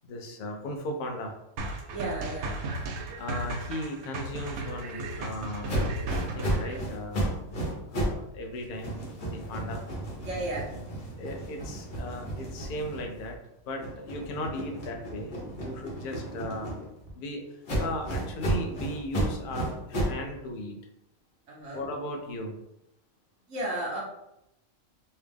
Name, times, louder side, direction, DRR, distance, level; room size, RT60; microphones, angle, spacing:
voice 1, 0.0-1.3 3.2-5.8 6.3-7.3 7.9-9.8 11.1-13.4 13.7-16.8 17.1-20.8 21.7-22.6, left 1 dB, 60° left, 2 dB, 0.5 m, -37 dB
sound 1, 1.6-6.8, right 2 dB, 85° right, 1.1 m, -35 dB
voice 2, 1.9-2.6 10.2-10.7 15.8-16.2 21.5-21.9 23.5-24.0, right 1 dB, 60° right, -4 dB, 1.4 m, -34 dB
sound 2, 5.7-8.3 8.6-13.3 13.8-17.1 17.7-20.3, right 1 dB, 45° left, 0.9 m, -33 dB
3.3 x 2.8 x 3.4 m, 0.85 s
omnidirectional pair, 1.4 m